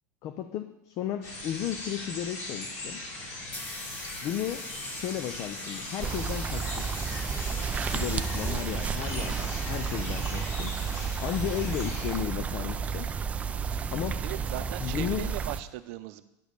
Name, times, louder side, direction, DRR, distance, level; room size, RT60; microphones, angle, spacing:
voice 1, 0.2-3.0 4.2-6.9 7.9-10.8 11.2-13.1 13.9-14.2 14.8-15.4, left 10 dB, 40° left, 8 dB, 0.5 m, -34 dB
sound 1, 1.2-12.2, left 2 dB, 80° left, 4.1 m, -40 dB
sound 2, 3.2-9.2, left 2 dB, 20° left, 1.1 m, -43 dB
sound 3, 6.0-15.6, right 6 dB, 15° right, 0.4 m, -32 dB
voice 2, 14.2-16.2, right 14 dB, 65° right, 12 dB, 0.7 m, -38 dB
10.5 x 5.1 x 6.6 m, 0.90 s
supercardioid pair, 145°, 8 cm